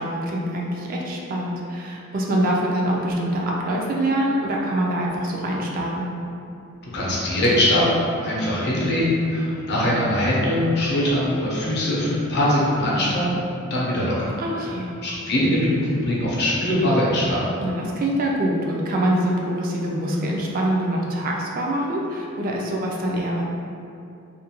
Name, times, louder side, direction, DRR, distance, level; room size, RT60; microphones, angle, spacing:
voice 1, 0.0-6.1 14.4-14.9 17.6-23.4, right 1 dB, 45° right, -2 dB, 0.3 m, -24 dB
voice 2, 6.9-7.9 8.2-13.4 13.7-14.3 15.0-17.4, left 1 dB, 55° left, -5 dB, 0.6 m, -21 dB
2.4 x 2.1 x 2.8 m, 2.6 s
head